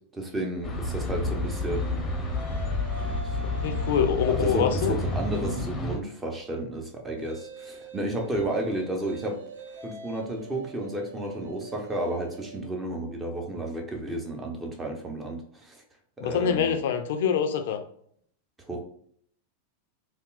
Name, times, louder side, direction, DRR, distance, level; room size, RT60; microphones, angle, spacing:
voice 1, 0.1-2.1 3.2-3.4 3.7-3.8 4.3-9.4 9.8-15.8 16.2-16.8 18.7-18.8, right 1 dB, 15° right, 2 dB, 0.8 m, -32 dB
sound 1, 0.6-6.0, left 2 dB, 20° left, 0.7 m, -29 dB
sound 2, 1.4-5.8 7.2-12.6, right 2 dB, 80° right, 0.6 m, -44 dB
voice 2, 3.4-4.9 16.2-17.8, left 8 dB, 65° left, 7 dB, 0.4 m, -25 dB
3.4 x 2.4 x 2.4 m, 0.64 s
hypercardioid pair, 95°, 0 cm